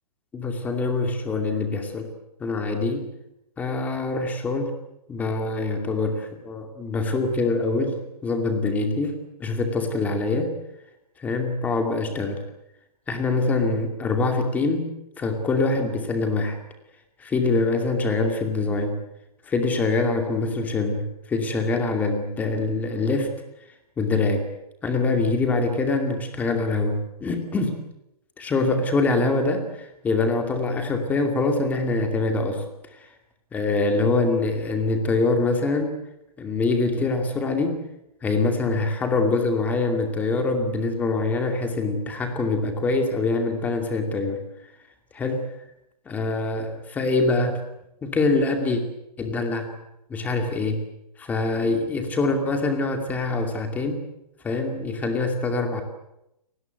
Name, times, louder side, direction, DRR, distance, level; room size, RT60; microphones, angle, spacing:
voice 1, 0.3-2.1 2.4-3.1 3.6-4.7 5.1-10.5 11.2-12.4 13.1-14.9 15.2-16.6 17.2-19.0 19.5-23.3 24.0-24.5 24.8-27.8 28.4-32.6 33.5-36.0 36.4-37.8 38.2-44.4 45.1-45.5 46.1-47.6 48.0-48.8 49.2-49.7 50.1-50.8 51.2-54.0 54.4-55.8, left 3 dB, 10° left, 5 dB, 2.5 m, -24 dB
29.5 x 19.5 x 8.1 m, 0.86 s
hypercardioid pair, 165°, 21 cm